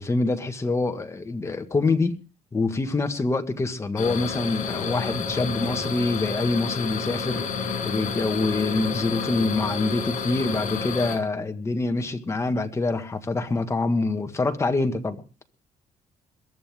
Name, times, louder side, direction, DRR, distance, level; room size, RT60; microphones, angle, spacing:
voice 1, 0.0-2.2 2.5-15.2, left 3 dB, 20° left, 1.7 m, -25 dB
sound 1, 4.0-11.2, left 5 dB, 70° left, 6.8 m, -30 dB
22.0 x 13.0 x 3.6 m
cardioid pair, 135°, 14 cm